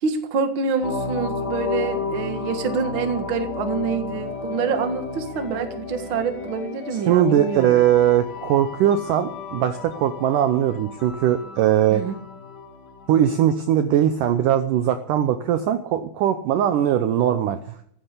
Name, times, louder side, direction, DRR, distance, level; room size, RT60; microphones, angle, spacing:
voice 1, 0.0-7.8 11.9-12.2, right 5 dB, 50° right, 7 dB, 1.5 m, -26 dB
sound 1, 0.8-13.4, left 4 dB, 50° left, 5.1 m, -33 dB
sound 2, 4.1-13.8, left 8 dB, 80° left, 1.1 m, -43 dB
voice 2, 7.1-12.0 13.1-17.6, right 10 dB, 85° right, 9 dB, 1.8 m, -20 dB
14.5 x 10.0 x 8.3 m, 0.68 s
omnidirectional pair, 4.9 m